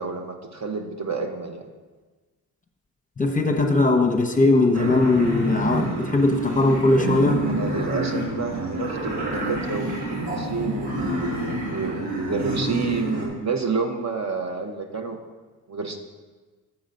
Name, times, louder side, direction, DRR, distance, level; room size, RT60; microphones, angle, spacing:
voice 1, 0.0-1.6 7.5-15.2 15.7-16.0, right 4 dB, 45° right, 4 dB, 1.0 m, -30 dB
voice 2, 3.2-7.4, left 2 dB, 20° left, 3 dB, 1.0 m, -20 dB
sound 1, 4.7-13.3, right 1 dB, 75° right, 2.3 m, -28 dB
7.1 x 3.8 x 6.5 m, 1.3 s
supercardioid pair, 55°, 40 cm